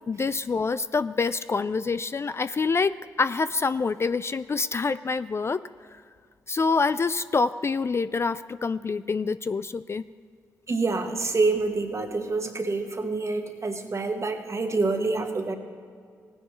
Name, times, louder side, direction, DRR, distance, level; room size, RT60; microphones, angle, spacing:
voice 1, 0.1-5.6 6.5-10.0, left 4 dB, 35° left, 14 dB, 0.3 m, -26 dB
voice 2, 10.7-15.5, right 3 dB, 40° right, 6 dB, 1.5 m, -27 dB
18.0 x 9.9 x 3.1 m, 2.1 s
hypercardioid pair, 40°, 8 cm